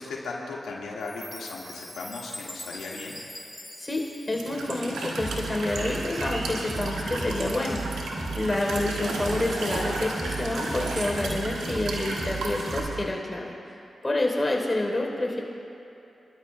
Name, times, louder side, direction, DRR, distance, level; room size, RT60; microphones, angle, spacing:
voice 1, 0.0-3.2 8.9-9.0, left 3 dB, 85° left, -3 dB, 1.7 m, -37 dB
Chime, 1.0-5.2, left 1 dB, 10° left, 1.6 m, -43 dB
voice 2, 3.8-13.5 14.0-15.4, left 2 dB, 30° left, 0 dB, 3.4 m, -28 dB
Walk footsteps / Chirp tweet / Stream, 4.3-12.8, right 2 dB, 90° right, 1.5 m, -33 dB
sound 1, 5.2-13.1, right 3 dB, 40° right, 3.1 m, -36 dB
25.5 x 13.0 x 2.2 m, 2.9 s
supercardioid pair, 40°, 0 cm